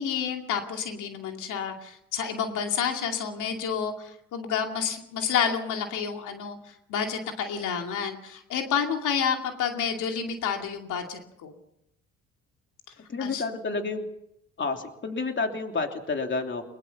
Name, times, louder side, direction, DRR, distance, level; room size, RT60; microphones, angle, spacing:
voice 1, 0.0-11.5 13.2-13.4, left 7 dB, 85° left, 3 dB, 2.5 m, -29 dB
voice 2, 13.1-14.1 14.6-16.6, left 3 dB, 40° left, 4 dB, 3.1 m, -30 dB
22.5 x 21.5 x 5.9 m, 0.79 s
cardioid pair, 90°, 30 cm